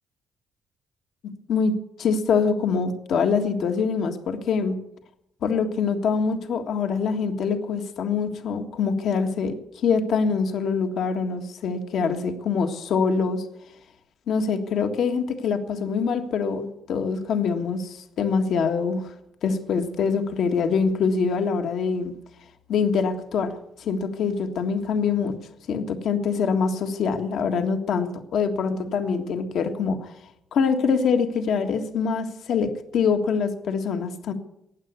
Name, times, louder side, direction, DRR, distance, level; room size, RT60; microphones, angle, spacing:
voice 1, 1.2-4.8 5.4-9.5 9.8-13.5 14.3-19.1 19.4-22.1 22.7-23.5 23.8-25.3 25.7-30.1 30.5-34.3, left 5 dB, 70° left, 6 dB, 1.7 m, -24 dB
15.0 x 9.5 x 9.5 m, 0.80 s
cardioid pair, 90°, 0 cm